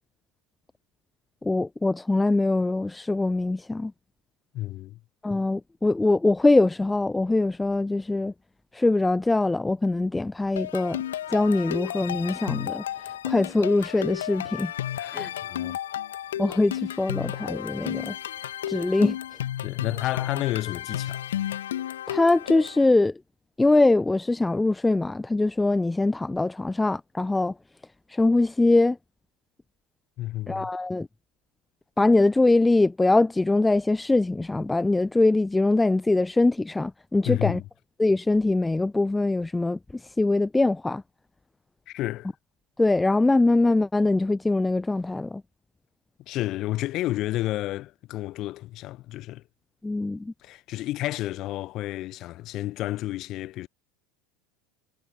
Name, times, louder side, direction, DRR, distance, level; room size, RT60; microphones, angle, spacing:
voice 1, 1.4-3.9 5.2-8.3 8.7-11.0 11.3-14.7 15.1-15.3 16.4-18.2 18.7-19.2 22.1-23.2 23.6-27.5 28.1-29.0 30.5-31.1 32.0-37.6 38.0-41.0 42.8-45.4 49.8-50.3, left 2 dB, 10° left, 0.7 m, -23 dB
voice 2, 4.5-5.0 15.0-15.8 19.6-21.3 30.2-30.7 37.2-37.6 41.9-42.3 46.3-49.4 50.4-53.7, left 16 dB, 45° left, 1.1 m, -31 dB
sound 1, 10.6-22.9, left 11 dB, 65° left, 1.5 m, -33 dB
figure-of-eight pair, 80°, 0 cm